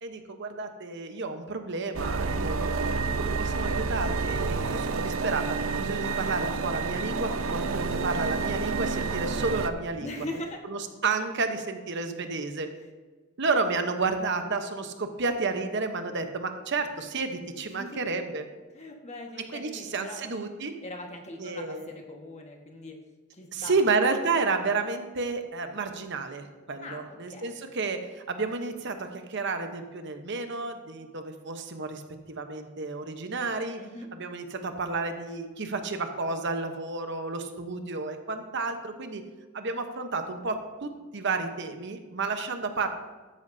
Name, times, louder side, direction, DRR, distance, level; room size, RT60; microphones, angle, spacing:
voice 1, 0.0-2.9 3.2-10.1 10.6-12.7 13.4-18.4 19.5-20.7 21.4-21.9 23.5-32.0 32.3-33.8 34.1-39.2 39.5-42.9, right 3 dB, 60° right, 6 dB, 1.0 m, -31 dB
sound 1, 1.9-9.7, right 4 dB, 90° right, 0.6 m, -29 dB
voice 2, 10.0-10.6 17.7-18.0 18.7-20.2 20.8-23.0 23.3-23.8 26.8-27.6 33.8-34.1, left 1 dB, 35° left, 2 dB, 1.5 m, -41 dB
14.0 x 10.5 x 2.7 m, 1.3 s
head